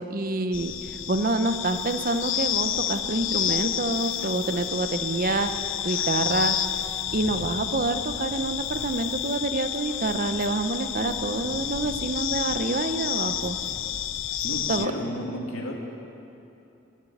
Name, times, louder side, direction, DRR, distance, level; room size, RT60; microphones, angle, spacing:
voice 1, 0.0-6.7 7.1-13.6 14.7-14.9, right 2 dB, 45° right, 9 dB, 0.8 m, -27 dB
sound 1, 0.5-14.9, left 11 dB, 70° left, 0.6 m, -30 dB
voice 2, 14.4-15.7, equal, 90° left, -1 dB, 2.6 m, -32 dB
21.0 x 7.5 x 9.2 m, 2.8 s
head